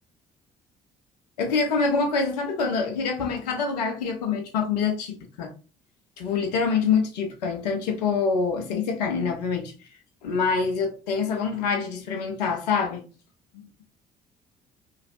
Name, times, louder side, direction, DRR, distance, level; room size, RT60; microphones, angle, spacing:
voice 1, 1.4-5.5 6.2-9.7 10.2-13.0, left 5 dB, 70° left, 0.7 m, -25 dB
3.0 x 2.5 x 2.6 m
figure-of-eight pair, 50°, 21 cm